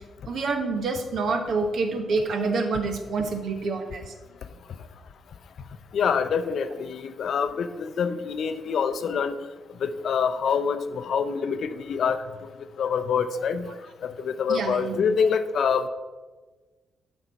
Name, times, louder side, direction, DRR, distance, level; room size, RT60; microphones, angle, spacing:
voice 1, 0.3-4.1 14.5-15.0, right 4 dB, 65° right, 5 dB, 1.1 m, -27 dB
voice 2, 5.9-9.3 9.8-12.2 12.8-13.7 14.0-15.8, left 6 dB, 65° left, 11 dB, 0.5 m, -26 dB
7.8 x 4.5 x 5.8 m, 1.3 s
hypercardioid pair, 50°, 0 cm